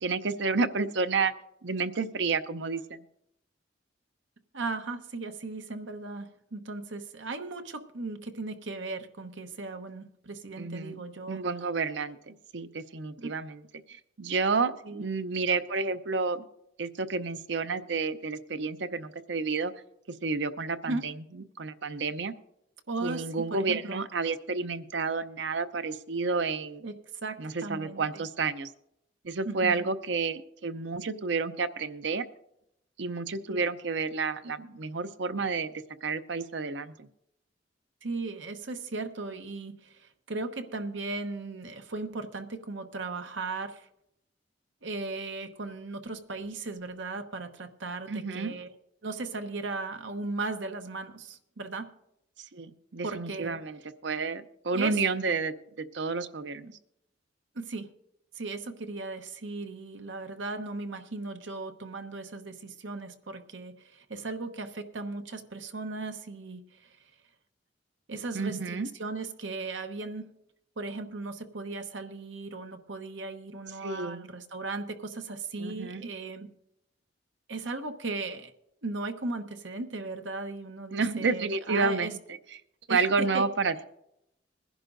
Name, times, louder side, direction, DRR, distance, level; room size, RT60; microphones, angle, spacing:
voice 1, 0.0-1.3 1.6-3.0 10.6-13.6 13.9-16.4 16.8-19.7 20.2-21.1 21.6-22.3 23.0-26.8 27.4-28.7 29.2-32.2 33.0-35.7 36.0-37.1 48.1-48.5 52.5-56.7 68.3-68.9 73.8-74.3 75.6-76.1 80.9-82.2 82.9-83.8, right 4 dB, 70° right, 11 dB, 0.7 m, -30 dB
voice 2, 4.5-11.4 13.2-13.3 14.8-15.0 20.8-21.1 22.9-24.0 26.8-26.9 27.2-28.2 29.4-29.8 33.5-33.6 38.0-43.9 44.8-48.7 49.0-51.9 53.0-53.6 54.7-55.0 57.5-57.9 58.3-67.0 68.1-70.3 70.8-76.5 77.5-78.5 78.8-82.1 82.9-83.5, right 3 dB, 90° right, 6 dB, 1.1 m, -37 dB
21.5 x 11.0 x 2.6 m, 0.78 s
head